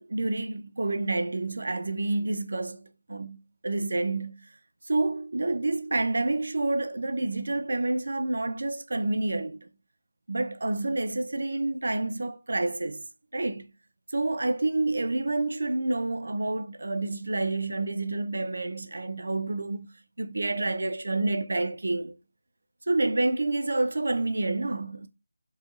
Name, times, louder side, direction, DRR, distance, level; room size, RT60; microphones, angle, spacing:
voice 1, 0.0-3.4 3.6-4.4 4.8-9.7 10.3-13.0 13.3-13.7 14.1-19.9 20.2-22.2 22.9-25.1, right 2 dB, 55° right, 0.5 m, -28 dB
4.7 x 2.6 x 2.8 m
figure-of-eight pair, 175°, 0 cm